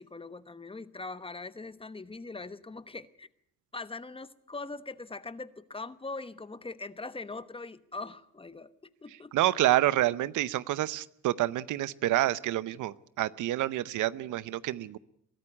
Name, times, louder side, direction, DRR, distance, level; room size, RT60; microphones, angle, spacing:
voice 1, 0.0-3.3 3.7-9.3, left 3 dB, 20° left, 14 dB, 1.1 m, -41 dB
voice 2, 9.3-15.0, right 14 dB, 80° right, 18 dB, 0.8 m, -28 dB
23.0 x 13.5 x 9.7 m, 0.73 s
cardioid pair, 90°, 30 cm